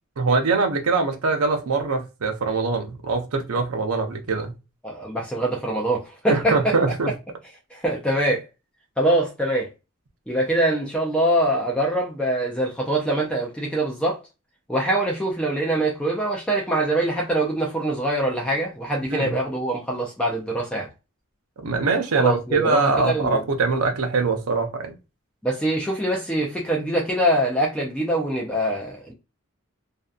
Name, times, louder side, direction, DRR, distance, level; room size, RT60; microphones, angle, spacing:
voice 1, 0.2-4.5 6.3-7.1 19.1-19.4 21.6-25.0, right 4 dB, 80° right, 0.6 m, -23 dB
voice 2, 4.8-6.9 7.7-8.5 9.0-9.7 10.3-14.2 14.7-20.9 22.1-23.4 25.4-29.1, right 1 dB, 5° left, 0.4 m, -24 dB
2.6 x 2.2 x 2.3 m
head